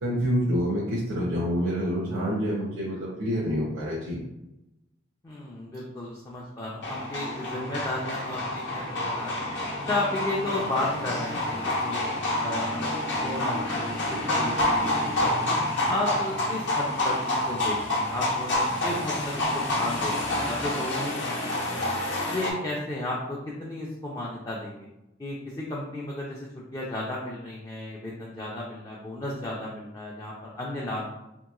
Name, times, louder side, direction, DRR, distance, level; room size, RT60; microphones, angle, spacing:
voice 1, 0.0-4.2, equal, 80° right, -7 dB, 0.7 m, -27 dB
voice 2, 5.2-9.5 9.9-11.5 11.8-12.0 12.4-15.6 15.9-21.9 22.2-24.9 25.2-31.1, left 2 dB, 20° left, -4 dB, 0.4 m, -34 dB
sound 1, 6.8-22.5, left 1 dB, 60° left, 0.8 m, -28 dB
2.9 x 2.9 x 2.3 m, 0.91 s
head